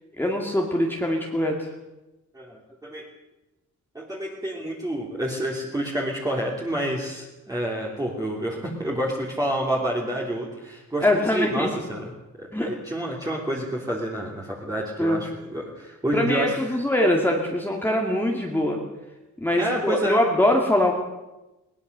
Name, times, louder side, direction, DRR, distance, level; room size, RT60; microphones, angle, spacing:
voice 1, 0.2-1.7 11.0-11.7 12.5-12.7 15.0-15.2 16.1-18.8 19.4-20.9, left 1 dB, 5° left, 0 dB, 2.3 m, -23 dB
voice 2, 2.3-3.0 3.9-12.1 12.4-16.8 19.6-20.2, right 1 dB, 10° right, -3 dB, 3.1 m, -29 dB
21.0 x 20.0 x 6.8 m, 1.0 s
wide cardioid pair, 160°, 31 cm